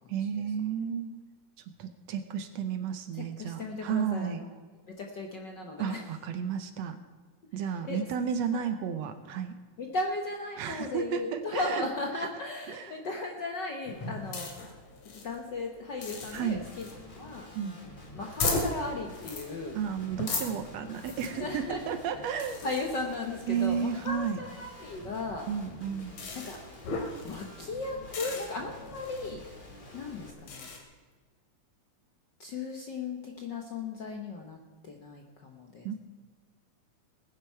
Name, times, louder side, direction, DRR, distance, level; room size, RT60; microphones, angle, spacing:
voice 1, 0.1-1.1 1.8-4.4 5.8-7.0 7.5-9.5 10.6-11.9 12.7-13.0 16.3-16.6 17.6-17.8 19.8-22.7 23.5-24.4 25.5-26.1 35.9-36.0, right 8 dB, 70° right, 9 dB, 1.9 m, -32 dB
voice 2, 3.1-4.5 4.9-6.0 7.6-8.1 8.5-8.6 9.8-14.5 15.2-17.5 18.1-19.8 21.4-21.9 22.6-25.5 26.3-26.6 26.8-26.9 27.2-29.4 29.9-30.7 32.4-34.6 34.8-35.9, left 3 dB, 55° left, 2 dB, 1.3 m, -36 dB
sound 1, 13.9-30.8, left 3 dB, 70° left, 3.4 m, -39 dB
Guitar, 16.0-30.3, left 1 dB, 20° left, 1.5 m, -50 dB
19.5 x 10.0 x 4.6 m, 1.5 s
omnidirectional pair, 3.4 m